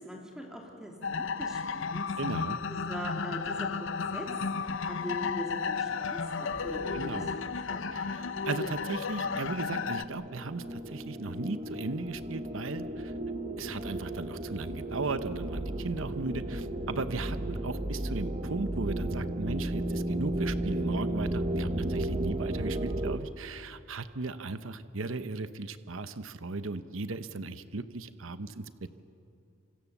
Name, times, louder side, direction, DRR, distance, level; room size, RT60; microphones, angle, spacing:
voice 1, 0.0-2.1 2.7-4.3 4.6-8.0, equal, 5° right, 0 dB, 3.3 m, -41 dB
sound 1, 1.0-10.0, left 5 dB, 60° left, 0.8 m, -33 dB
voice 2, 2.2-2.6 6.9-7.3 7.9-13.1 13.6-29.0, right 3 dB, 65° right, 11 dB, 0.9 m, -37 dB
sound 2, 6.5-23.2, right 1 dB, 30° right, 1.1 m, -34 dB
27.5 x 25.5 x 7.3 m, 2.6 s
head